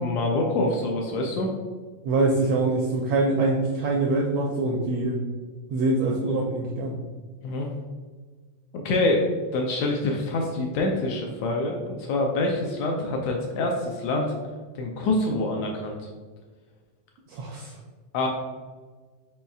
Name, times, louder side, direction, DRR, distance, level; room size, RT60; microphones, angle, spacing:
voice 1, 0.0-1.5 7.4-7.7 8.7-9.3 9.5-14.3 14.8-16.0 18.1-18.3, left 2 dB, 80° left, 1 dB, 1.6 m, -26 dB
voice 2, 2.0-5.2 5.7-6.9 17.3-17.8, right 2 dB, 80° right, -1 dB, 1.5 m, -24 dB
5.3 x 4.2 x 2.3 m, 1.5 s
omnidirectional pair, 3.4 m